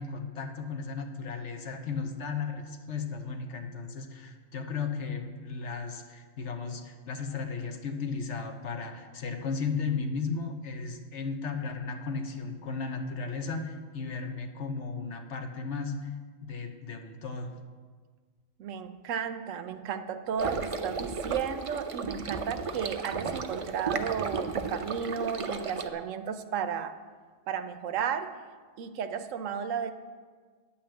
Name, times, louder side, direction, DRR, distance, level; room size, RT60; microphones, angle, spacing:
voice 1, 0.0-16.1 16.4-17.5, left 5 dB, 65° left, 5 dB, 1.2 m, -35 dB
voice 2, 18.6-26.9 27.5-28.3 28.8-29.9, right 7 dB, 75° right, 10 dB, 1.0 m, -33 dB
sound 1, 20.4-25.9, right 5 dB, 60° right, 0.3 m, -34 dB
10.0 x 5.7 x 7.6 m, 1.5 s
omnidirectional pair, 1.4 m